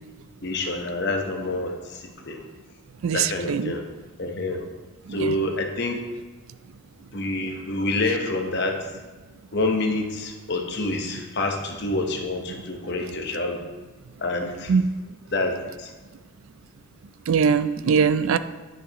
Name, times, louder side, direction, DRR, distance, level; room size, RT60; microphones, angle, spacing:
voice 1, 0.4-2.4 3.1-3.8 4.2-4.6 5.1-6.0 7.1-8.9 9.5-13.6 14.2-14.8 15.3-15.9, left 2 dB, 50° left, 3 dB, 1.0 m, -27 dB
voice 2, 3.0-3.7 14.7-14.8 17.3-18.4, right 6 dB, 70° right, 13 dB, 0.4 m, -21 dB
10.5 x 6.9 x 3.0 m, 1.2 s
head